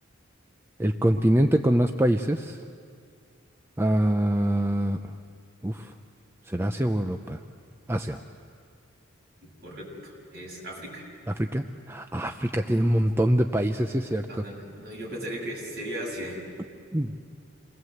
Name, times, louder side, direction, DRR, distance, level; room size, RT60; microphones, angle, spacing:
voice 1, 0.8-2.6 3.8-5.0 5.6-5.9 6.5-7.4 7.9-8.2 11.4-14.3 16.9-17.1, right 1 dB, 10° right, 5 dB, 0.6 m, -24 dB
voice 2, 9.4-11.0 14.3-16.4, equal, 50° right, -3 dB, 7.2 m, -37 dB
28.0 x 21.0 x 7.9 m, 2.3 s
head